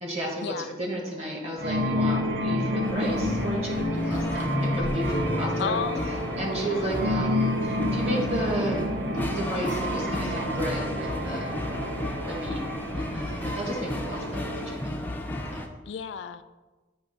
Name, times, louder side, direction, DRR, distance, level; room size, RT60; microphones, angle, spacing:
voice 1, 0.0-5.8 6.4-8.8 9.3-11.6 12.3-12.6 13.0-15.0 15.5-15.6, right 1 dB, 35° right, -1 dB, 1.6 m, -33 dB
sound 1, 1.6-14.8, left 1 dB, 60° right, 0.7 m, -30 dB
sound 2, 2.8-15.7, left 1 dB, 10° left, 0.5 m, -34 dB
sound 3, 3.1-8.2, left 1 dB, 10° right, 0.8 m, -32 dB
voice 2, 5.6-6.2 6.5-7.0 15.9-16.4, left 6 dB, 70° left, 11 dB, 0.3 m, -33 dB
8.8 x 3.0 x 5.7 m, 1.2 s
head